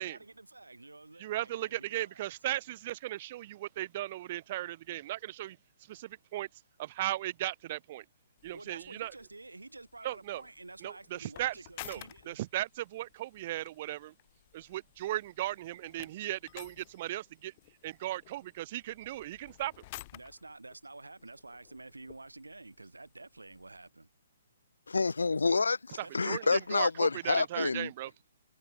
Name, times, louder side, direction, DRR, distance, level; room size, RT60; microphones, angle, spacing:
voice 1, 0.0-2.3 8.5-12.4 20.1-24.1 26.0-26.5, right 2 dB, 85° right, 4.4 m, -50 dB
voice 2, 1.2-5.6 5.9-6.5 6.8-8.0 8.4-9.1 10.0-10.4 10.8-11.5 11.8-12.0 12.3-14.1 14.5-17.5 17.8-19.7 26.0-28.1, right 15 dB, 40° right, 1.1 m, -37 dB
sound 1, 8.4-23.9, left 20 dB, 35° left, 4.7 m, -54 dB
voice 3, 24.9-27.9, left 4 dB, 75° left, 1.8 m, -28 dB
figure-of-eight pair, 130°, 0 cm